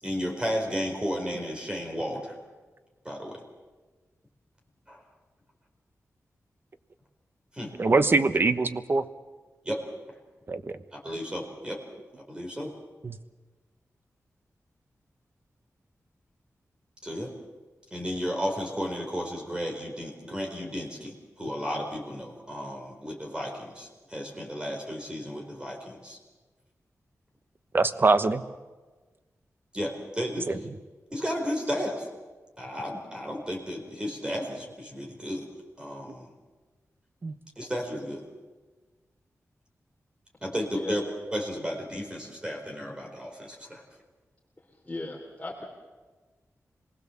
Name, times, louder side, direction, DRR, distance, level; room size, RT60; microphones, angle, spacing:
voice 1, 0.0-2.4 3.0-3.4 4.9-5.0 7.5-7.7 9.6-9.8 10.9-11.8 12.3-12.7 17.0-17.3 17.9-26.2 29.7-30.5 31.1-32.1 32.6-35.5 35.8-36.3 37.6-38.2 40.4-41.0 41.3-43.8, equal, 15° right, 1 dB, 4.4 m, -33 dB
voice 2, 7.8-9.0 10.5-10.7 13.0-13.2 27.7-28.4 30.5-30.6 37.2-37.3, right 3 dB, 40° right, 11 dB, 1.0 m, -23 dB
voice 3, 44.8-45.6, left 2 dB, 20° left, -3 dB, 3.2 m, -36 dB
26.0 x 20.0 x 7.2 m, 1.3 s
wide cardioid pair, 125°, 6 cm